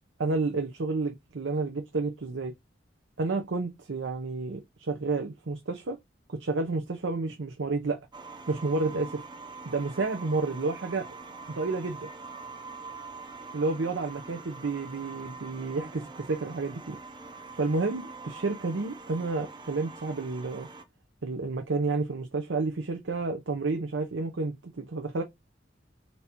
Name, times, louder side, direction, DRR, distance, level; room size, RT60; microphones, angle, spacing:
voice 1, 0.2-2.5 3.2-6.0 6.3-8.0 8.5-9.2 9.6-11.1 11.5-12.1 13.5-17.0 17.6-20.7 21.2-25.2, right 3 dB, 75° right, 0.7 m, -30 dB
sound 1, 8.1-20.8, right 4 dB, 25° right, 0.6 m, -44 dB
4.1 x 3.3 x 2.8 m
head